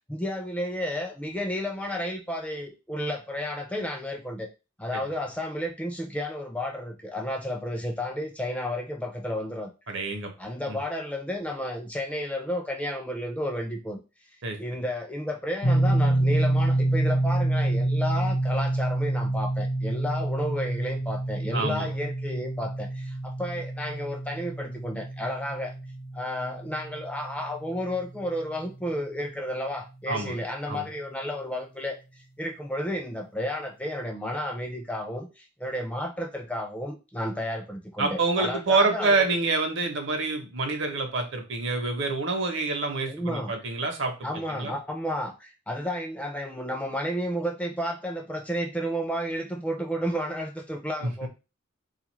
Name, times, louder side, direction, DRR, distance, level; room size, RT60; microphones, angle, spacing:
voice 1, 0.1-4.5 4.8-9.7 10.4-14.0 14.6-25.7 26.1-32.0 32.4-39.3 43.1-43.5 44.2-51.3, equal, 5° left, 3 dB, 0.4 m, -32 dB
voice 2, 9.9-10.3 10.7-10.8 14.4-14.6 21.5-21.9 30.1-30.4 30.7-30.9 38.0-44.1 44.5-44.8 51.0-51.3, right 3 dB, 65° right, 5 dB, 0.8 m, -27 dB
sound 1, 15.6-28.5, right 1 dB, 50° left, 0.8 m, -27 dB
3.8 x 2.4 x 3.0 m, 0.29 s
head